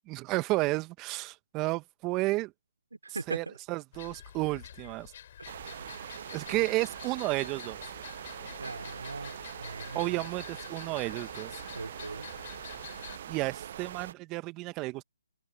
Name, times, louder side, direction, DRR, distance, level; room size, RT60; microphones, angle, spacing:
voice 1, 0.1-2.5 3.3-5.1 6.3-7.8 9.9-11.6 13.3-15.0, right 21 dB, 20° right, 1.3 m, -32 dB
voice 2, 2.9-3.6 5.4-5.6 8.5-10.2 11.7-12.3, right 3 dB, 85° right, 4.0 m, -40 dB
sound 1, 3.9-13.2, left 10 dB, 45° left, 4.0 m, -48 dB
sound 2, 5.4-14.1, right 10 dB, 45° right, 0.6 m, -43 dB
figure-of-eight pair, 145°, 0 cm